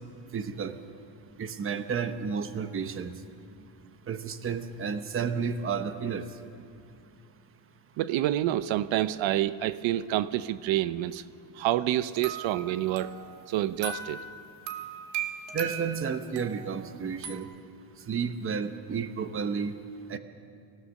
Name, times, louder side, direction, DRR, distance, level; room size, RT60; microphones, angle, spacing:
voice 1, 0.3-0.8 1.4-3.1 4.1-6.3 15.5-17.5 18.1-19.7 20.1-20.2, right 6 dB, 30° right, 10 dB, 0.9 m, -31 dB
voice 2, 8.0-11.3 11.5-13.1 13.5-14.3, right 13 dB, 90° right, 15 dB, 0.7 m, -28 dB
sound 1, 12.2-17.4, right 6 dB, 70° right, 1.8 m, -38 dB
25.0 x 16.0 x 6.5 m, 2.4 s
cardioid pair, 170°, 44 cm